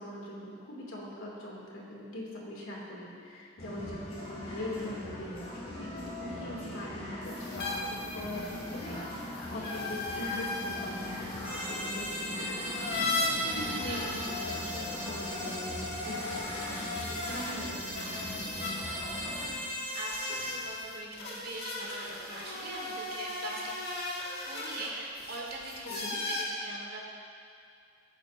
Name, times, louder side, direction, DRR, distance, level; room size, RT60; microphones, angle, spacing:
voice 1, 0.0-17.0 17.3-18.0 25.8-26.2, left 1 dB, 70° left, -4 dB, 2.5 m, -42 dB
sound 1, 3.6-19.5, left 1 dB, 30° left, 2.3 m, -41 dB
sound 2, 7.2-17.5 17.9-26.4, left 2 dB, 50° left, 1.9 m, -38 dB
sound 3, 11.4-20.6, equal, 10° right, 2.3 m, -39 dB
voice 2, 13.6-14.1 17.3-17.4 19.9-23.7 24.4-27.0, right 2 dB, 45° right, -2 dB, 1.8 m, -42 dB
17.0 x 9.5 x 2.7 m, 2.4 s
head